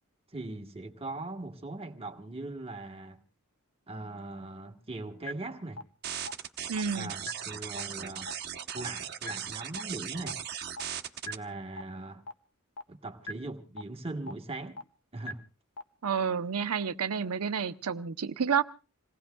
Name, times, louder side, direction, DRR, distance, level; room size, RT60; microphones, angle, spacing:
voice 1, 0.3-3.2 3.9-5.8 6.9-8.3 8.7-10.4 11.2-12.2 12.9-14.8 15.1-15.4, right 2 dB, 25° right, 1.3 m, -40 dB
sound 1, 5.3-5.4 5.8-5.9 6.3-6.4 6.8-6.9 7.3-7.4 7.8-7.9 8.3-8.4 8.8-8.9 9.3-9.4 9.8-9.9 10.3-10.4 10.8-10.9 11.3-11.4 11.8-11.9 12.3-12.4 12.8-12.9 13.3-13.4 13.8-13.9 14.3-14.4 14.8-14.9 15.3-15.4 15.8-15.9, left 1 dB, 70° left, 0.9 m, -37 dB
sound 2, 6.0-11.3, right 9 dB, 50° right, 1.0 m, -38 dB
voice 2, 6.7-7.1 16.0-18.6, right 6 dB, 80° right, 0.7 m, -30 dB
27.5 x 18.5 x 2.3 m
head